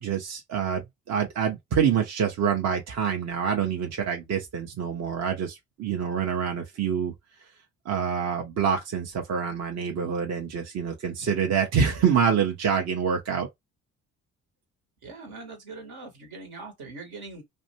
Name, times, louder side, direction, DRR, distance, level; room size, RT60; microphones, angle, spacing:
voice 1, 0.0-7.1 7.9-13.5, right 7 dB, 40° right, 0.7 m, -26 dB
voice 2, 15.0-17.4, right 3 dB, 65° right, 1.3 m, -42 dB
2.5 x 2.1 x 2.8 m
hypercardioid pair, 45°, 41 cm